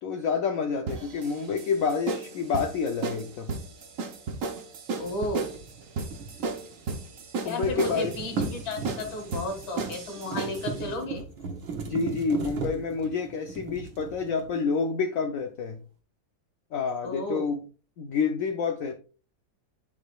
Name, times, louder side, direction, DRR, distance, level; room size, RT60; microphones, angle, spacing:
voice 1, 0.0-3.5 7.4-8.1 11.9-15.8 16.7-17.6 18.0-18.9, left 5 dB, 65° left, 5 dB, 0.8 m, -28 dB
sound 1, 0.9-10.7, right 4 dB, 50° right, 1.1 m, -34 dB
sound 2, 4.9-7.2 7.4-14.7, right 4 dB, 75° right, 1.9 m, -37 dB
voice 2, 5.0-5.5 7.4-11.3 17.0-17.5, left 2 dB, 90° left, 3 dB, 2.4 m, -33 dB
11.0 x 4.8 x 2.3 m, 0.36 s
omnidirectional pair, 2.1 m